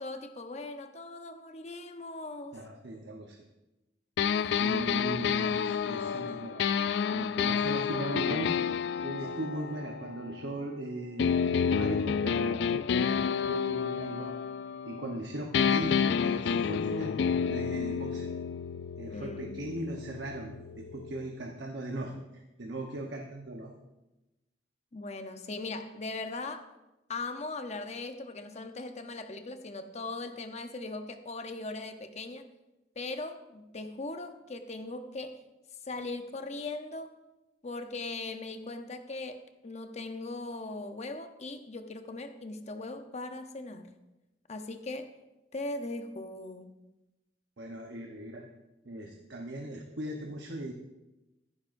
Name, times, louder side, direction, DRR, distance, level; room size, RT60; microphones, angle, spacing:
voice 1, 0.0-2.7 19.1-19.6 24.9-26.7 27.1-32.5 33.0-35.4 35.8-37.1 37.6-43.9 44.5-45.1 45.5-46.7, left 2 dB, 40° left, 8 dB, 0.8 m, -39 dB
voice 2, 2.5-3.4 4.5-6.7 7.1-8.5 9.0-11.3 11.7-13.1 13.5-14.4 14.8-18.3 19.0-23.7 47.6-48.5 48.8-50.7, right 1 dB, 70° right, 1 dB, 1.0 m, -38 dB
sound 1, 4.2-10.7 11.2-15.2 15.5-21.3, left 7 dB, 65° left, 0.3 m, -30 dB
14.5 x 11.5 x 2.6 m, 1.0 s
head